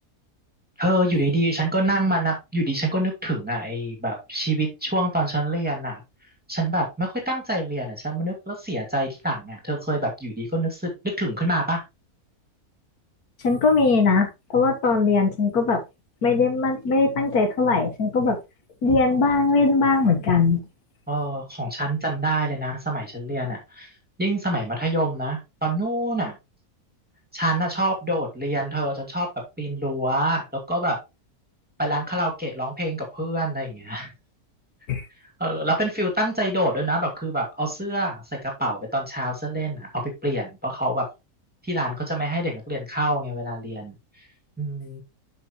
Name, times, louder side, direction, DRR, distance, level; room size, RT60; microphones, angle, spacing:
voice 1, 0.8-6.0 6.5-11.8 21.1-23.9 24.2-26.3 27.3-29.3 29.6-31.0 31.8-34.1 35.4-41.1 41.6-44.3 44.6-45.0, right 1 dB, 5° right, 2.4 m, -26 dB
voice 2, 13.4-15.8 16.2-18.4 18.8-20.6 34.9-35.0, left 4 dB, 90° left, 1.9 m, -20 dB
8.5 x 6.0 x 3.1 m
omnidirectional pair, 1.6 m